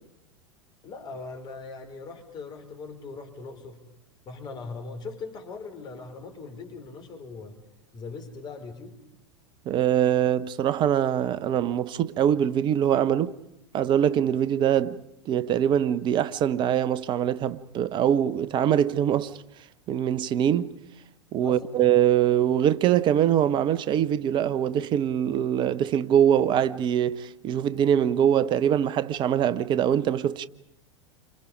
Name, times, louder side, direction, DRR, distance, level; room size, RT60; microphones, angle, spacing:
voice 1, 0.8-3.8 4.2-7.6 7.9-9.0 21.4-21.6, left 4 dB, 30° left, 4.9 m, -40 dB
voice 2, 9.7-13.4 13.7-19.3 19.9-20.8 21.3-30.5, right 10 dB, 30° right, 1.0 m, -23 dB
30.0 x 26.5 x 5.1 m
figure-of-eight pair, 90°, 15 cm